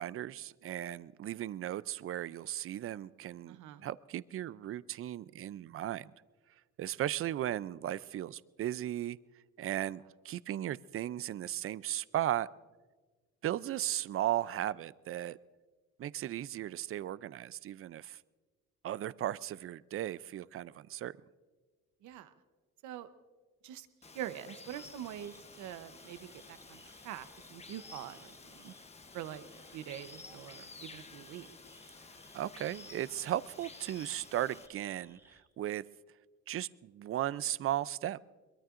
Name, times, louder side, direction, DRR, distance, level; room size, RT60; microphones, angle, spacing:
voice 1, 0.0-6.1 6.8-9.2 9.6-12.5 13.4-15.4 16.0-18.2 18.8-21.2 32.3-35.8 36.5-38.2, right 12 dB, 50° right, 18 dB, 0.5 m, -36 dB
voice 2, 3.5-3.8 22.0-22.3 22.8-23.1 23.6-23.9 24.1-28.7 29.1-29.4 29.7-31.5, right 11 dB, 90° right, 11 dB, 0.9 m, -44 dB
Water, 24.0-34.7, left 4 dB, 20° left, 0.9 m, -53 dB
sound 1, 24.6-35.4, right 1 dB, 10° right, 2.6 m, -62 dB
23.0 x 22.0 x 2.5 m, 1.4 s
cardioid pair, 95°, 29 cm